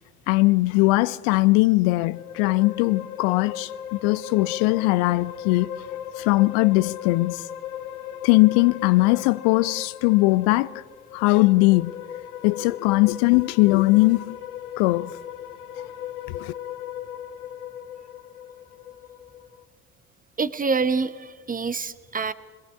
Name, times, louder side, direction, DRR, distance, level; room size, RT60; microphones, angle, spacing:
voice 1, 0.3-5.7 6.2-7.4 8.2-10.7 11.1-11.9 12.4-14.4 14.8-15.1 16.3-16.5, left 21 dB, 55° left, 0.6 m, -20 dB
sound 1, 2.0-19.6, left 10 dB, 80° left, 1.1 m, -37 dB
voice 2, 20.4-22.3, right 4 dB, 20° right, 1.1 m, -26 dB
22.5 x 19.0 x 8.4 m
figure-of-eight pair, 60°, 44 cm